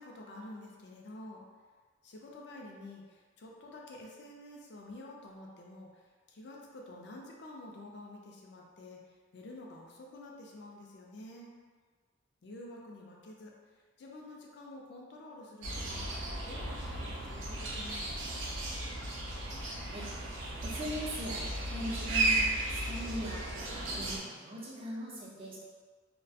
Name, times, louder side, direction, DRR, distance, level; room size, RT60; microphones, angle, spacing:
voice 1, 0.0-1.4 2.0-6.0 6.3-9.0 9.3-11.5 12.4-13.5 14.0-16.1 16.5-18.4, left 1 dB, 60° left, -1 dB, 0.4 m, -49 dB
sound 1, 15.6-24.2, right 2 dB, 80° right, 0.4 m, -35 dB
voice 2, 20.6-23.4 23.7-25.6, equal, 30° right, -5 dB, 0.5 m, -40 dB
2.3 x 2.1 x 2.6 m, 1.5 s
head